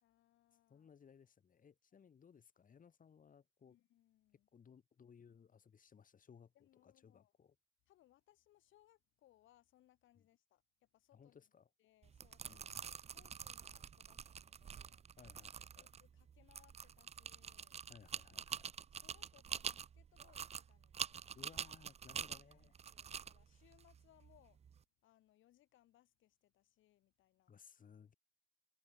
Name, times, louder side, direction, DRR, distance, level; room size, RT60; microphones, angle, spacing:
voice 1, 0.0-0.9 3.7-4.5 6.5-7.3 7.9-11.4 11.8-15.1 15.8-17.8 18.6-21.3 22.3-24.6 25.0-27.5, left 14 dB, 80° left, 1.3 m, -71 dB
voice 2, 0.7-3.8 4.5-7.6 11.1-11.7 12.5-12.8 15.2-15.9 17.9-18.7 21.3-22.7 27.5-28.1, left 7 dB, 45° left, 1.7 m, -62 dB
sound 1, 12.0-24.8, right 7 dB, 35° right, 0.4 m, -47 dB
cardioid pair, 90°, 20 cm